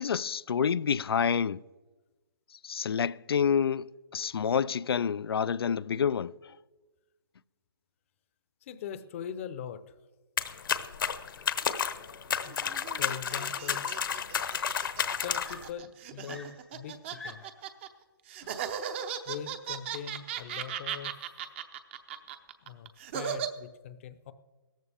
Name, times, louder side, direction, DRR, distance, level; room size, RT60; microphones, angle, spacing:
voice 1, 0.0-1.6 2.6-6.6, left 7 dB, 80° left, 0.4 m, -28 dB
voice 2, 8.6-9.9 12.4-12.6 13.0-13.9 15.2-17.4 18.4-18.7 19.3-21.1 22.6-24.3, left 8 dB, 35° left, 0.7 m, -42 dB
sound 1, 10.4-15.7, left 8 dB, 60° left, 1.0 m, -31 dB
sound 2, 12.5-17.9 18.3-23.5, right 9 dB, 30° right, 0.8 m, -37 dB
Screaming, 14.4-15.1 15.4-17.7 18.7-18.9, left 3 dB, ahead, 0.8 m, -49 dB
16.5 x 14.0 x 3.5 m
hypercardioid pair, 155°, 13 cm